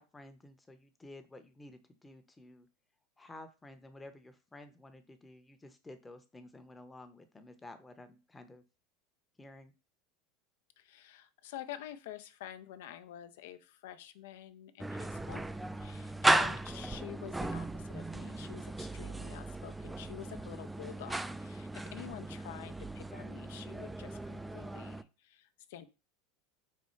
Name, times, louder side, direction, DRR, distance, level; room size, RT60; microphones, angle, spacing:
voice 1, 0.0-2.7 3.2-8.6 9.4-9.7 15.8-16.1, left 2 dB, 15° left, 8 dB, 0.7 m, -52 dB
voice 2, 10.8-15.4 15.8-25.9, left 12 dB, 70° left, 10 dB, 0.4 m, -48 dB
sound 1, 14.8-25.0, right 2 dB, 10° right, 0.3 m, -36 dB
4.2 x 2.3 x 4.3 m, 0.30 s
hypercardioid pair, 95°, 0 cm